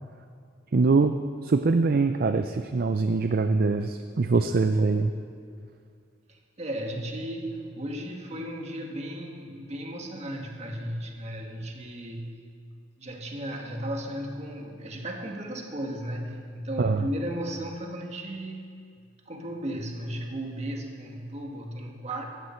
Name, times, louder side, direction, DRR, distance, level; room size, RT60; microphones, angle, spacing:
voice 1, 0.7-1.2 1.4-5.1 16.8-17.1, right 3 dB, 55° right, 8 dB, 0.5 m, -23 dB
voice 2, 6.3-12.4 13.0-18.8 19.2-22.2, right 1 dB, 35° right, 1 dB, 1.7 m, -35 dB
17.5 x 14.5 x 4.4 m, 2.3 s
head